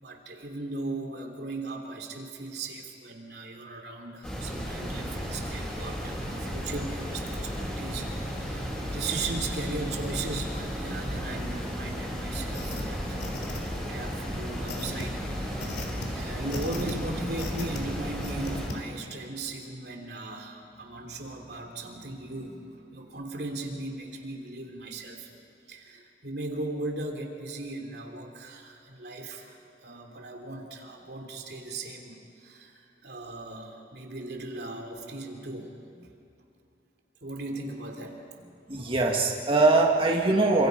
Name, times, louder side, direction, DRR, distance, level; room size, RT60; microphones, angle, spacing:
voice 1, 0.0-13.5 13.9-25.3 25.7-35.7 37.2-38.2, right 2 dB, 60° right, 3 dB, 3.2 m, -38 dB
sound 1, 4.2-18.7, equal, 5° left, 7.5 m, -34 dB
sound 2, 12.5-12.8 13.2-13.9 14.7-15.0 15.6-16.1 16.5-16.9 17.4-17.8 18.2-18.8, left 2 dB, 60° left, 3.3 m, -37 dB
voice 2, 38.7-40.7, right 3 dB, 30° right, 0 dB, 2.0 m, -22 dB
29.0 x 26.5 x 5.4 m, 2.6 s
head